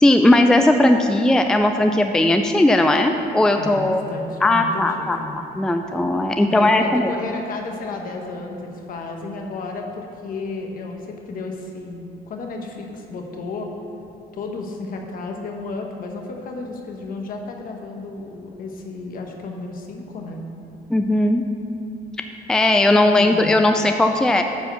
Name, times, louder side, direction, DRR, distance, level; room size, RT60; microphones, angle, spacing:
voice 1, 0.0-4.0 4.4-5.2 5.6-7.1 20.9-21.4 22.5-24.4, left 1 dB, 5° left, 6 dB, 0.4 m, -17 dB
voice 2, 3.6-5.3 6.4-13.7 14.3-20.5 23.2-23.5, left 3 dB, 55° left, 3 dB, 1.2 m, -32 dB
9.4 x 4.4 x 6.8 m, 2.8 s
cardioid pair, 110°, 17 cm